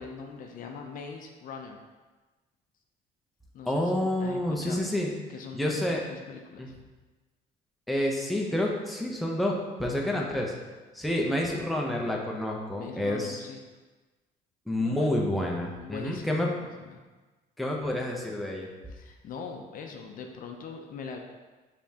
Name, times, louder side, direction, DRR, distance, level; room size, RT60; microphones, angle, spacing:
voice 1, 0.0-1.8 3.5-4.8 5.3-5.8 6.1-6.7 12.8-13.6 14.7-15.1 15.8-17.0 18.9-21.2, left 5 dB, 55° left, 3 dB, 0.5 m, -42 dB
voice 2, 3.7-5.1 5.5-6.0 6.6-6.7 7.9-10.5 10.9-13.4 14.7-16.5 17.6-18.7, left 1 dB, ahead, -1 dB, 0.6 m, -29 dB
5.1 x 3.5 x 2.8 m, 1.3 s
cardioid pair, 110°, 17 cm